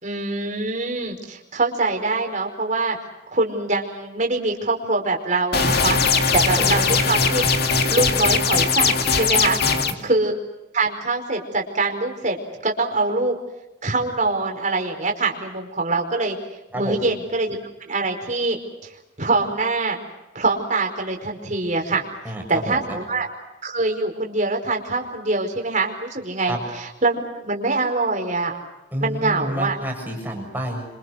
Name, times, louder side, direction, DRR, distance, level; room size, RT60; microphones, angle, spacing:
voice 1, 0.0-3.0 3.3-6.0 6.3-7.4 7.9-9.6 10.0-10.3 10.7-12.4 12.6-13.4 13.8-16.4 16.7-17.6 17.8-18.6 19.2-20.0 20.3-22.0 22.5-23.3 23.6-28.6 29.0-29.8, right 3 dB, 40° right, 2 dB, 4.9 m, -24 dB
sound 1, 5.5-9.9, left 5 dB, 55° left, 2.3 m, -20 dB
voice 2, 9.6-10.0 16.7-17.0 22.2-23.0 26.5-26.6 28.9-30.9, equal, 10° right, 1 dB, 7.2 m, -29 dB
28.0 x 26.0 x 6.5 m, 1.0 s
head